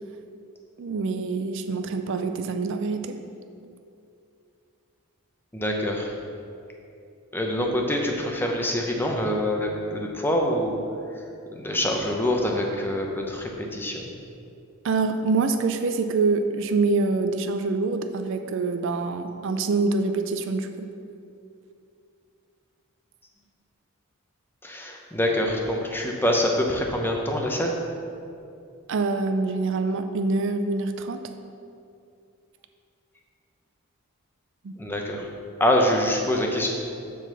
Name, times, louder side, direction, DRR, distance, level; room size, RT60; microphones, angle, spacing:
voice 1, 0.8-3.2 14.8-20.9 28.9-31.3 34.6-34.7, right 3 dB, 55° right, 8 dB, 0.4 m, -25 dB
voice 2, 5.5-6.1 7.3-10.8 11.6-14.0 24.6-27.7 34.8-35.3 35.6-36.7, left 1 dB, 10° left, 1 dB, 0.7 m, -25 dB
7.5 x 3.9 x 6.6 m, 2.5 s
head